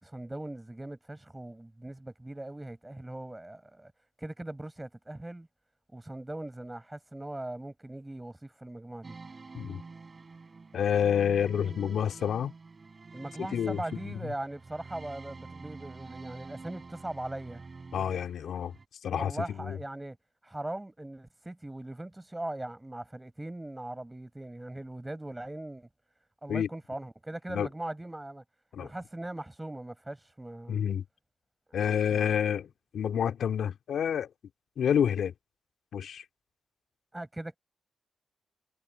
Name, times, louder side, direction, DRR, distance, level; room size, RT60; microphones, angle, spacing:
voice 1, 0.0-3.9 4.2-5.5 5.9-9.2 13.1-17.6 19.1-20.2 20.4-25.9 26.4-28.4 28.8-30.8 31.7-32.3 37.1-37.6, right 1 dB, 15° right, 6.3 m, -40 dB
sound 1, 9.0-18.9, right 4 dB, 45° right, 6.7 m, -47 dB
voice 2, 10.7-12.5 13.4-14.3 17.9-18.7 19.0-19.8 26.5-26.7 27.5-27.7 28.7-28.9 30.7-31.0 31.7-34.3 34.8-35.3 35.9-36.2, left 8 dB, 75° left, 2.6 m, -29 dB
supercardioid pair, 45°, 0 cm